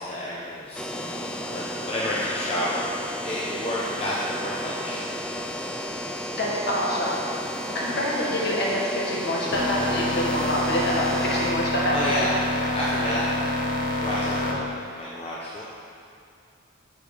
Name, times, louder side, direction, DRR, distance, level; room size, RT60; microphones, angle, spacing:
voice 1, 0.0-5.1 7.8-8.0 11.9-13.2 14.0-15.6, left 1 dB, 30° left, -7 dB, 1.0 m, -31 dB
sound 1, 0.7-11.5, equal, 5° left, 0.4 m, -33 dB
voice 2, 6.4-7.3 7.7-12.3, left 1 dB, 50° left, -4 dB, 1.8 m, -26 dB
sound 2, 9.5-14.5, left 1 dB, 55° right, 1.3 m, -27 dB
8.8 x 7.4 x 5.0 m, 2.5 s
head